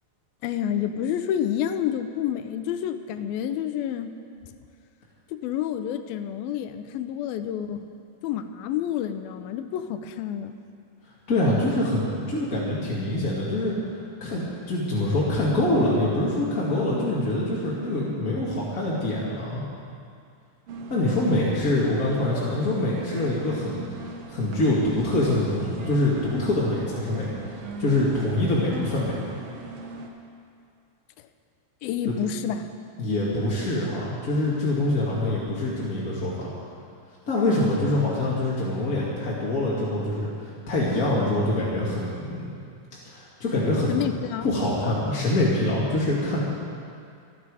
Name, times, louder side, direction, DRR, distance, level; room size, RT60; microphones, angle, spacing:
voice 1, 0.4-4.1 5.3-7.9 8.2-10.5 31.8-32.7 43.9-44.5, left 10 dB, 80° left, 9 dB, 2.3 m, -29 dB
voice 2, 11.3-13.7 14.2-19.6 20.9-23.8 24.3-27.3 27.8-29.2 32.1-32.2 33.0-36.5 37.3-42.5 43.0-43.9 44.4-46.4, left 1 dB, 35° left, -7 dB, 1.5 m, -25 dB
sound 1, 20.7-30.1, right 2 dB, 75° right, 1.4 m, -40 dB
26.0 x 9.4 x 4.8 m, 2.4 s
omnidirectional pair, 4.5 m